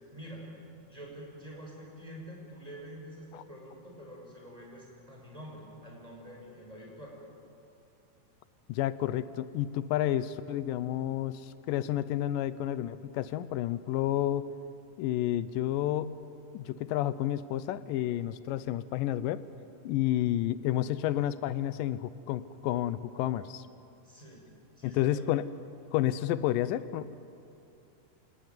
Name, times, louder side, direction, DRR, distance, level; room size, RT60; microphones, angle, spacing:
voice 1, 0.1-0.5 0.9-7.2 24.0-24.4 24.8-25.2, equal, 10° right, -2 dB, 6.3 m, -47 dB
voice 2, 8.7-14.5 15.0-16.2 16.5-19.4 19.8-23.7 24.8-25.5 25.9-27.2, left 13 dB, 90° left, 15 dB, 2.4 m, -30 dB
27.5 x 18.5 x 9.6 m, 2.7 s
omnidirectional pair, 3.8 m